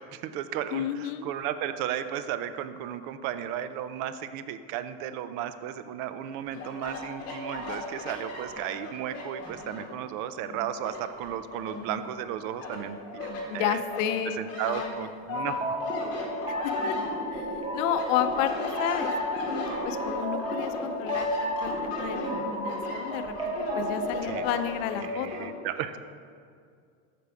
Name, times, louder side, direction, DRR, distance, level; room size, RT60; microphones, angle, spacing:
voice 1, 0.0-13.8 14.4-15.6 24.3-24.5 25.0-26.0, right 10 dB, 50° right, 12 dB, 0.4 m, -34 dB
voice 2, 0.7-1.3 13.5-14.4 14.7-15.1 16.6-16.9 17.3-17.5 17.7-18.5 18.8-19.1 19.8-25.5, left 10 dB, 75° left, 10 dB, 0.7 m, -31 dB
sound 1, 6.5-10.0 10.4-12.2 12.6-13.4 13.9-17.5 17.8-25.4, left 3 dB, 40° left, 2.0 m, -37 dB
sound 2, 15.3-24.6, equal, 15° right, 0.8 m, -32 dB
8.2 x 6.0 x 4.9 m, 2.3 s
cardioid pair, 155°, 38 cm